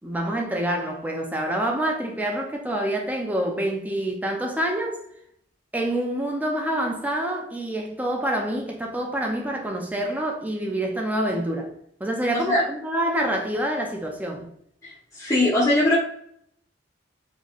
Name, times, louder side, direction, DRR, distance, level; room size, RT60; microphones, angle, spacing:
voice 1, 0.0-5.0 5.7-11.7 12.0-14.5, right 1 dB, 10° right, 0.6 m, -27 dB
voice 2, 15.2-16.0, left 1 dB, 15° left, 0.9 m, -20 dB
4.0 x 3.2 x 2.4 m
head